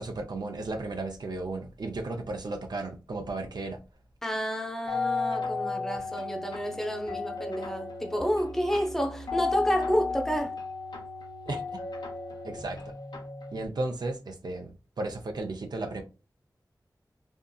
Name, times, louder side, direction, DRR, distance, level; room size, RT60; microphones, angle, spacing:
voice 1, 0.0-3.8 11.5-11.8 12.4-12.8 13.5-16.0, right 2 dB, 75° right, 0.5 m, -34 dB
voice 2, 4.2-10.6, equal, 5° left, 0.6 m, -30 dB
sound 1, 4.9-13.7, left 4 dB, 80° left, 0.6 m, -34 dB
2.6 x 2.5 x 2.3 m
cardioid pair, 45°, 7 cm